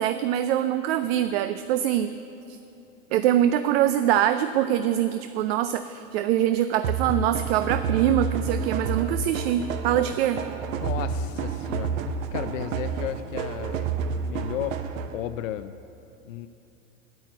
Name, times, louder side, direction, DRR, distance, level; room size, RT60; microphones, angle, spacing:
voice 1, 0.0-2.1 3.1-10.4, right 11 dB, 50° right, 11 dB, 0.5 m, -24 dB
sound 1, 6.8-15.3, right 5 dB, 65° right, 0.8 m, -29 dB
voice 2, 10.8-14.9 15.1-15.8 16.3-16.5, left 12 dB, 65° left, 10 dB, 0.5 m, -34 dB
9.5 x 9.2 x 7.9 m, 2.7 s
hypercardioid pair, 95°, 42 cm